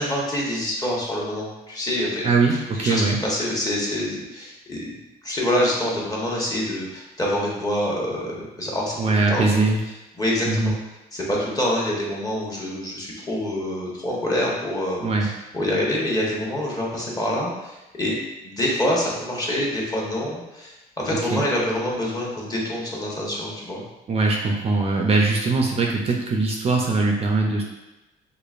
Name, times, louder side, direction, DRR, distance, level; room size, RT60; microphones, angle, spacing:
voice 1, 0.0-4.9 5.2-9.0 9.3-9.6 10.2-10.8 11.1-18.2 18.4-23.8, left 1 dB, 20° left, -4 dB, 1.1 m, -26 dB
voice 2, 2.2-3.2 9.0-9.8 10.5-10.7 15.0-15.3 21.3-21.4 24.1-27.6, right 3 dB, 35° right, 0 dB, 0.5 m, -21 dB
4.9 x 2.5 x 2.4 m, 1.0 s
cardioid pair, 110°, 17 cm